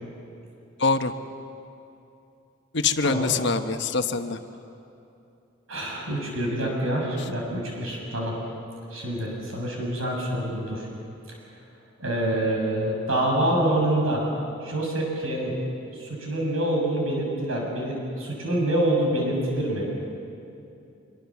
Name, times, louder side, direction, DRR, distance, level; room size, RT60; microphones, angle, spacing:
voice 1, 0.8-1.1 2.7-4.4, left 4 dB, 55° left, 8 dB, 1.1 m, -24 dB
voice 2, 3.0-3.3 5.7-8.3 8.9-10.9 12.0-14.2 14.6-15.5 15.9-19.9, right 1 dB, 80° right, 0 dB, 6.2 m, -26 dB
25.0 x 23.0 x 7.2 m, 2.7 s
head